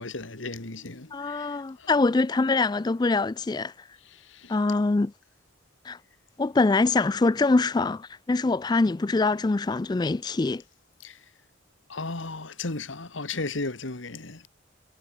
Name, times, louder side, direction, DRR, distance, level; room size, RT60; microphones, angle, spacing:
voice 1, 0.0-1.9 4.1-4.6 11.0-11.2 11.9-14.5, left 3 dB, 80° left, 2.1 m, -35 dB
voice 2, 1.1-3.7 4.5-5.1 5.8-6.0 6.4-10.6, left 3 dB, 20° left, 0.3 m, -24 dB
head